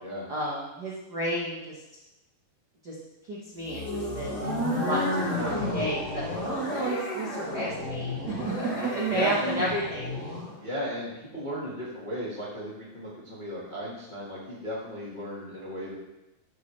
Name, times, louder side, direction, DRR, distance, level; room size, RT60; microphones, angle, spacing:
voice 1, 0.3-1.8 2.8-2.9 3.3-10.1, right 1 dB, 75° right, -5 dB, 0.9 m, -32 dB
sound 1, 3.6-10.5, left 1 dB, 50° left, 3.0 m, -32 dB
voice 2, 9.1-9.6 10.6-15.9, equal, 30° left, -6 dB, 0.8 m, -35 dB
12.0 x 6.9 x 3.3 m, 0.98 s
omnidirectional pair, 4.0 m